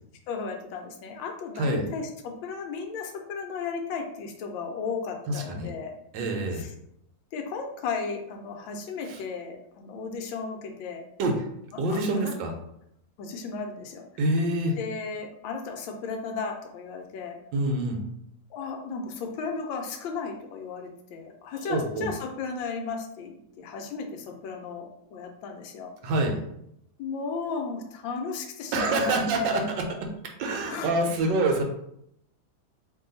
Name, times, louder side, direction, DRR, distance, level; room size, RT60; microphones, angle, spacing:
voice 1, 0.3-5.9 6.5-6.7 7.3-11.0 11.7-12.3 13.2-14.3 14.8-17.4 18.5-25.9 27.0-29.6 30.7-30.9 31.2-31.4, left 5 dB, 80° left, 4 dB, 1.3 m, -35 dB
voice 2, 5.3-5.7 6.1-6.6 9.1-9.2 11.2-11.3 11.8-12.5 14.2-14.8 17.5-18.0 21.7-22.1 26.0-26.4 28.7-29.9 30.4-31.6, right 2 dB, 75° right, 3 dB, 1.3 m, -26 dB
3.0 x 2.7 x 3.8 m, 0.75 s
omnidirectional pair, 2.1 m